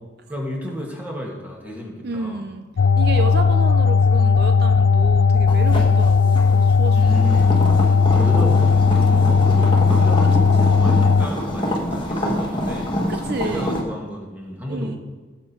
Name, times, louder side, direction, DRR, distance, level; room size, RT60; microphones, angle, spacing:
voice 1, 0.3-2.5 3.1-3.6 5.7-6.0 6.9-7.6 8.1-15.0, equal, 10° right, -1 dB, 2.3 m, -32 dB
voice 2, 2.0-2.7 3.0-8.1 10.3-10.7 13.1-13.8 14.7-15.0, right 3 dB, 55° right, 7 dB, 0.6 m, -31 dB
sound 1, 2.8-11.3, left 5 dB, 75° left, 0.3 m, -16 dB
sound 2, 5.5-13.8, equal, 25° left, 1.6 m, -26 dB
18.0 x 7.4 x 4.7 m, 1.3 s
head